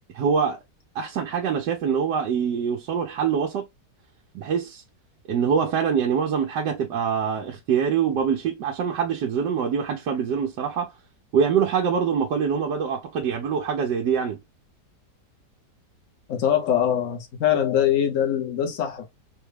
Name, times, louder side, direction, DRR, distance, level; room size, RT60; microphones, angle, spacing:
voice 1, 0.1-0.6 0.9-3.7 4.3-4.8 5.3-10.9 11.3-14.4, right 7 dB, 90° right, 1.3 m, -24 dB
voice 2, 16.3-19.1, left 10 dB, 55° left, 1.1 m, -23 dB
3.9 x 2.3 x 3.2 m
omnidirectional pair, 1.8 m